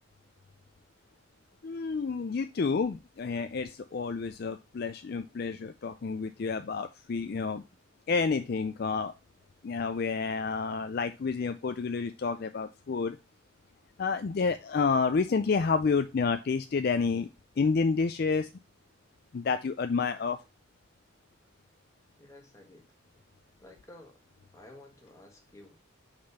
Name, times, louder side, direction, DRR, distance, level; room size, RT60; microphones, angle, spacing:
voice 1, 1.6-7.6 8.1-9.1 9.6-13.2 14.0-17.3 17.6-18.5 19.3-20.4, left 4 dB, 50° left, 9 dB, 0.4 m, -29 dB
voice 2, 22.2-22.9 23.6-24.2 24.5-25.8, left 1 dB, 15° left, 2 dB, 1.5 m, -52 dB
5.2 x 4.3 x 5.6 m, 0.27 s
head